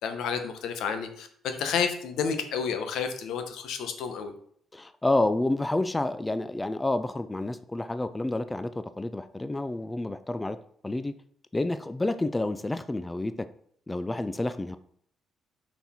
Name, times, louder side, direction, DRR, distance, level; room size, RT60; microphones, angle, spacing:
voice 1, 0.0-4.3, left 6 dB, 85° left, 7 dB, 0.9 m, -30 dB
voice 2, 4.7-10.6 10.8-11.1 11.5-13.5 13.9-14.8, left 2 dB, 15° left, 11 dB, 0.4 m, -29 dB
5.8 x 4.3 x 4.2 m, 0.62 s
cardioid pair, 90°, 0 cm